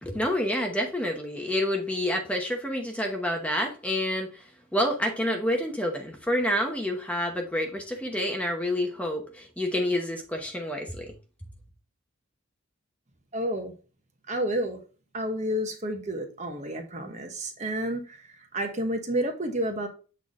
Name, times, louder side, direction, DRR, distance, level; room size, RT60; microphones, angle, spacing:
voice 1, 0.0-4.5 4.7-11.1, left 1 dB, 5° left, 2 dB, 0.9 m, -28 dB
voice 2, 13.3-13.7 14.3-14.8 15.1-19.9, right 1 dB, 35° right, 4 dB, 1.1 m, -30 dB
8.1 x 4.0 x 3.6 m, 0.35 s
head